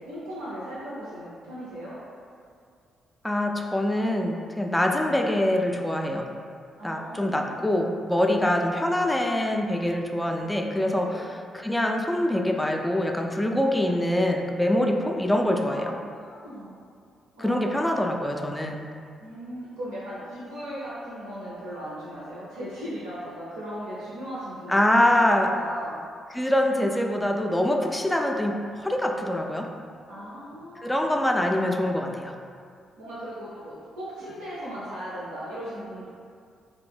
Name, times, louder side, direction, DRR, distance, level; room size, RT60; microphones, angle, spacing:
voice 1, 0.0-2.0 6.8-7.7 8.3-8.5 11.0-11.3 15.7-16.7 17.3-17.8 19.2-26.0 30.1-31.6 33.0-36.1, equal, 80° right, -10 dB, 0.5 m, -38 dB
voice 2, 3.2-6.3 6.8-11.2 11.5-15.9 17.4-18.9 24.7-25.5 26.3-29.7 30.8-32.4, left 1 dB, 10° left, 2 dB, 0.3 m, -24 dB
2.5 x 2.1 x 3.3 m, 2.2 s
figure-of-eight pair, 40°, 0 cm